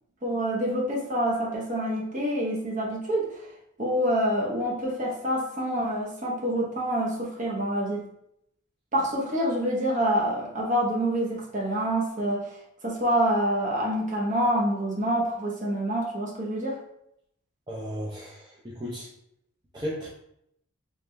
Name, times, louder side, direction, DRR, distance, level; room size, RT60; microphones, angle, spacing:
voice 1, 0.2-3.4 3.8-8.0 8.9-12.6 12.8-16.8, equal, 35° right, -3 dB, 1.0 m, -27 dB
voice 2, 17.7-19.1 19.7-20.1, equal, 20° right, -7 dB, 0.6 m, -35 dB
3.7 x 3.2 x 3.3 m, 0.76 s
head